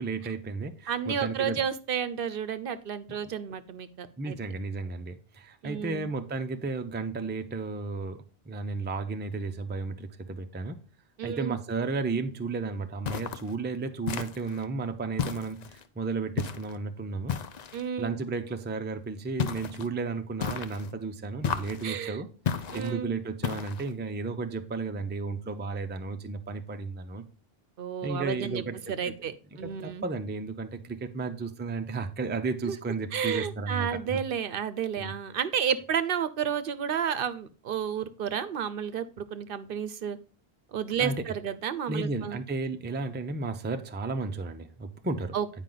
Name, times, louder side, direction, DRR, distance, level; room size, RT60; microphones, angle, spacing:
voice 1, 0.0-1.6 4.2-10.8 11.2-17.3 18.0-22.3 22.5-27.2 28.0-28.8 29.0-29.1 29.6-34.2 35.0-35.1 41.0-41.1 41.9-45.3, right 3 dB, 15° right, 0.4 m, -33 dB
voice 2, 0.9-4.4 5.6-6.1 11.2-11.6 17.7-18.2 21.8-22.2 22.7-23.2 27.8-30.0 32.6-32.8 33.1-40.2 40.7-42.4 45.3-45.6, right 8 dB, 65° right, 0.7 m, -31 dB
sound 1, 13.0-13.5 14.1-14.6 15.2-15.8 16.4-16.8 17.3-17.8 19.4-19.9 20.4-20.9 21.4-21.9 22.4-22.9 23.4-23.9, left 7 dB, 50° left, 0.6 m, -33 dB
9.0 x 4.9 x 3.9 m
omnidirectional pair, 1.0 m